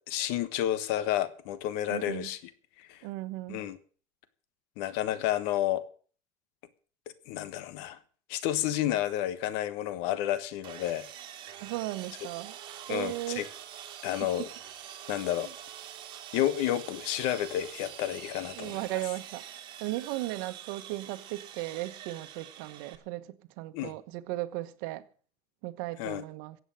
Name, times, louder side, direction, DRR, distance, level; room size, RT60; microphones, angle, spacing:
voice 1, 0.0-2.4 2.8-3.0 3.5-3.8 4.8-5.8 7.3-8.0 8.3-11.1 12.9-13.5 14.0-14.5 15.1-15.5 16.3-18.9 23.7-23.9 26.0-26.2, left 12 dB, 80° left, 1.3 m, -30 dB
voice 2, 1.9-2.3 3.0-3.6 11.6-12.6 12.9-13.4 18.6-19.4 19.8-25.0 25.6-26.6, right 17 dB, 80° right, 1.1 m, -36 dB
Sawing, 10.6-23.0, right 10 dB, 50° right, 2.5 m, -45 dB
sound 1, 12.3-17.8, right 6 dB, 25° right, 4.5 m, -57 dB
15.5 x 8.2 x 7.5 m
cardioid pair, 125°, 11 cm